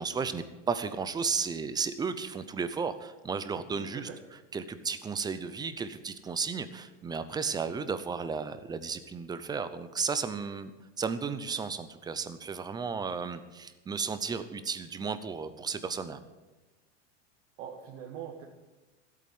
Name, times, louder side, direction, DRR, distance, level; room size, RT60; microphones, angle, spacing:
voice 1, 0.0-4.1 4.5-10.7 11.0-16.2, right 5 dB, 10° right, 12 dB, 0.7 m, -34 dB
voice 2, 3.5-4.2 17.6-18.4, right 8 dB, 65° right, 0 dB, 2.2 m, -43 dB
14.5 x 8.6 x 9.5 m, 1.1 s
supercardioid pair, 150°, 37 cm